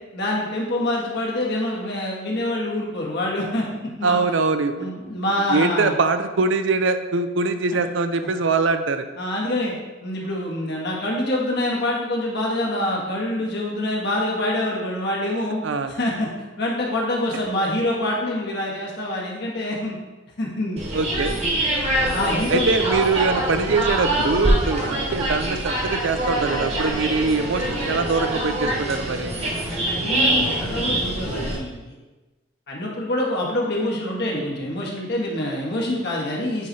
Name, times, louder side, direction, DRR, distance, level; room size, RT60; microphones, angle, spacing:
voice 1, 0.1-3.6 4.0-4.2 4.8-5.9 7.7-7.8 9.2-9.7 10.0-16.3 16.6-19.9 20.4-20.8 22.0-22.8 29.9-31.9 32.7-36.7, left 1 dB, 55° left, -3 dB, 1.5 m, -26 dB
voice 2, 4.0-4.9 5.5-9.1 15.6-15.9 20.9-21.3 22.5-29.3, right 4 dB, 65° right, 9 dB, 0.5 m, -23 dB
sound 1, 20.8-31.6, right 1 dB, 30° right, 1.4 m, -24 dB
8.9 x 3.3 x 4.1 m, 1.2 s
head